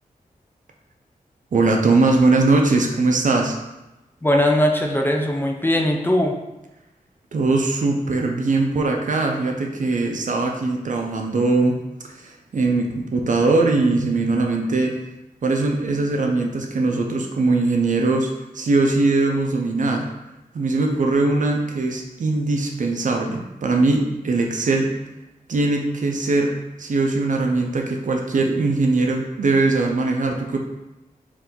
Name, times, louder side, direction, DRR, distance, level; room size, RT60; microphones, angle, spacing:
voice 1, 1.5-3.6 7.3-11.8 12.2-15.0 15.4-20.1 20.5-24.9 25.5-26.5 26.8-30.6, right 3 dB, 60° right, 2 dB, 0.6 m, -20 dB
voice 2, 4.2-6.3, left 1 dB, 15° left, 1 dB, 0.5 m, -19 dB
4.6 x 2.7 x 3.8 m, 0.98 s
wide cardioid pair, 100°, 15 cm